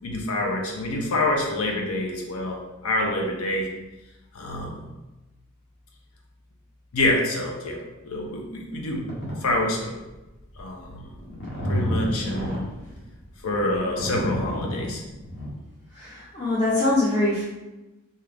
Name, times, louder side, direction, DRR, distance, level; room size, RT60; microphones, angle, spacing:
voice 1, 0.0-3.7 4.3-4.8 6.9-7.8 8.0-9.0 9.4-9.9 10.6-11.1 11.7-12.7 13.4-15.0, left 1 dB, 80° left, 0 dB, 0.6 m, -26 dB
sound 1, 8.9-9.3 9.8-10.1 10.6-15.5, equal, 55° left, 0.9 m, -30 dB
voice 2, 15.9-17.4, left 2 dB, 30° left, -12 dB, 0.8 m, -23 dB
2.8 x 2.4 x 3.3 m, 1.0 s
head